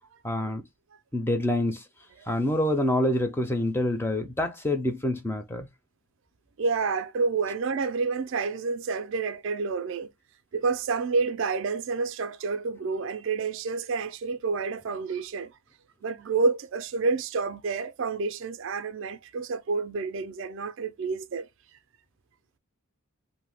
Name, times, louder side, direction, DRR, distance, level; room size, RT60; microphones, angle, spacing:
voice 1, 0.2-0.6 1.1-1.8 2.3-5.7, left 1 dB, 10° left, 0.4 m, -26 dB
voice 2, 6.6-10.1 10.5-15.6 16.0-21.5, right 4 dB, 55° right, 0.3 m, -29 dB
2.6 x 2.1 x 3.3 m
head